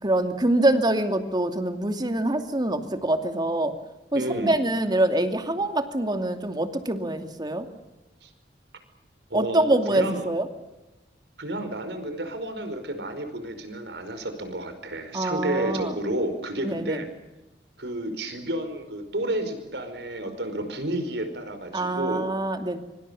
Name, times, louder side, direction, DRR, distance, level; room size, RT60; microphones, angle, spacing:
voice 1, 0.0-3.7 4.1-7.7 9.3-10.5 15.1-15.9 16.6-17.0 21.7-22.8, right 1 dB, 25° right, 7 dB, 2.6 m, -25 dB
voice 2, 4.1-4.6 8.2-8.3 9.3-10.3 11.4-17.1 17.8-22.3, right 1 dB, 75° right, 9 dB, 5.1 m, -31 dB
25.0 x 25.0 x 7.1 m, 1.0 s
head